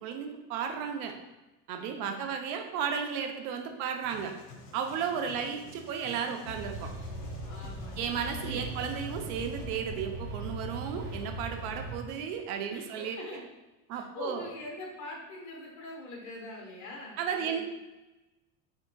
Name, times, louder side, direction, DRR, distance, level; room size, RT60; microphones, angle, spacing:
voice 1, 0.0-1.1 1.7-4.3 4.7-6.9 8.0-13.2 13.9-14.5 17.2-17.6, right 7 dB, 75° right, 4 dB, 0.6 m, -34 dB
voice 2, 1.9-2.3 5.3-5.6 7.4-9.0 12.7-13.4 13.9-17.6, left 2 dB, 40° left, -1 dB, 1.1 m, -44 dB
sound 1, 4.0-9.7, left 4 dB, 80° left, 0.8 m, -50 dB
sound 2, 6.4-12.0, right 1 dB, 10° right, 1.2 m, -39 dB
4.6 x 3.6 x 2.2 m, 1.1 s
cardioid pair, 165°, 44 cm